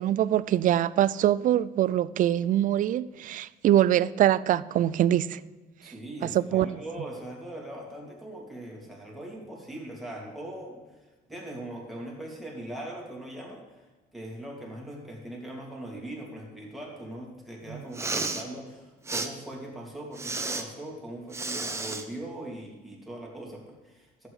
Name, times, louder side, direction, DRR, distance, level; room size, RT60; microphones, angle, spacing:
voice 1, 0.0-5.4 6.2-6.7 17.7-17.8, right 12 dB, 50° right, 0.4 m, -23 dB
voice 2, 5.8-10.8 11.3-24.3, right 1 dB, ahead, 3.0 m, -40 dB
Respiratory sounds, 17.8-18.4 19.1-19.3 20.2-20.6 21.3-22.0, right 3 dB, 15° right, 0.9 m, -32 dB
11.5 x 8.2 x 4.9 m
cardioid pair, 110°, 17 cm